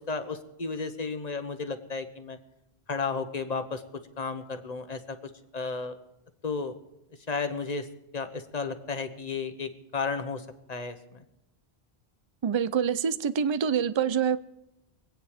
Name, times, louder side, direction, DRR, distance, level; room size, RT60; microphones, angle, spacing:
voice 1, 0.0-2.4 2.9-3.8 4.2-6.0 6.4-6.8 7.3-7.9 8.1-11.2, left 4 dB, 40° left, 1.2 m, -33 dB
voice 2, 12.4-14.4, right 7 dB, 35° right, 0.5 m, -26 dB
24.0 x 9.2 x 5.1 m
omnidirectional pair, 1.1 m